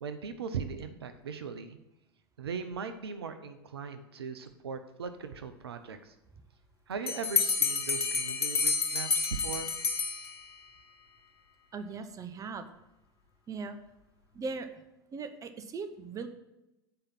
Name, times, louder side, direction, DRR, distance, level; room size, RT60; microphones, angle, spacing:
voice 1, 0.0-1.8 2.4-6.1 6.9-9.7, right 6 dB, 80° right, 9 dB, 0.7 m, -39 dB
Bell, 7.1-10.7, left 5 dB, 85° left, 0.9 m, -30 dB
voice 2, 11.7-12.7 13.5-13.8 14.3-14.7 15.1-16.3, right 4 dB, 25° right, 9 dB, 0.8 m, -39 dB
7.8 x 4.9 x 5.8 m, 0.93 s
hypercardioid pair, 85°, 13 cm